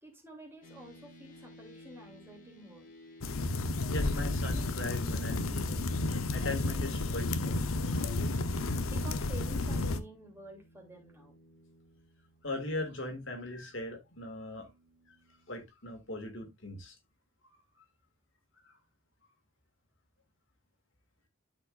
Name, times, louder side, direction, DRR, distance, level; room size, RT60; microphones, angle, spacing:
voice 1, 0.0-2.9 8.9-11.3, right 1 dB, 10° right, 2.8 m, -50 dB
sound 1, 0.6-15.7, equal, 40° left, 1.7 m, -57 dB
sound 2, 3.2-10.0, left 2 dB, 90° left, 0.8 m, -32 dB
voice 2, 3.9-5.9 6.3-7.7 12.4-14.7 15.5-17.0 18.6-18.7, left 2 dB, 65° left, 2.0 m, -39 dB
12.0 x 5.1 x 2.5 m
head